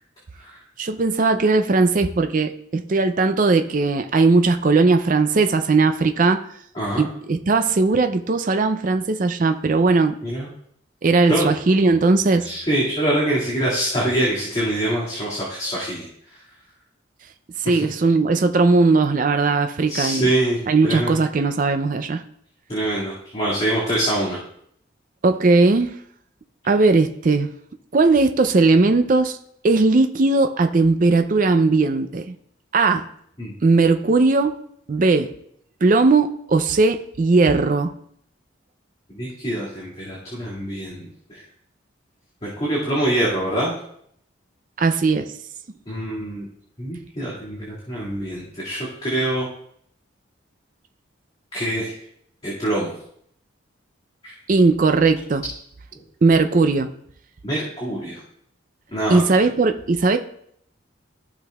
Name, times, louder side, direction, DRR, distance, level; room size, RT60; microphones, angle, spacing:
voice 1, 0.8-6.4 7.0-10.2 11.0-12.5 17.6-20.3 20.7-22.2 25.2-26.0 26.6-27.5 27.9-29.4 29.6-32.3 32.7-33.1 33.6-34.5 34.9-35.3 35.8-37.9 44.8-45.3 54.5-55.4 56.2-56.9 59.1-60.2, right 3 dB, 40° right, 8 dB, 0.4 m, -18 dB
voice 2, 12.4-16.1 19.9-20.6 20.8-21.2 22.7-24.4 33.4-33.5 39.2-41.1 42.4-43.7 45.9-46.5 46.8-49.5 51.5-51.9 52.4-52.9 54.2-54.3 57.4-58.2 58.9-59.2, right 1 dB, 30° left, -8 dB, 2.1 m, -24 dB
15.0 x 5.9 x 2.3 m, 0.68 s
head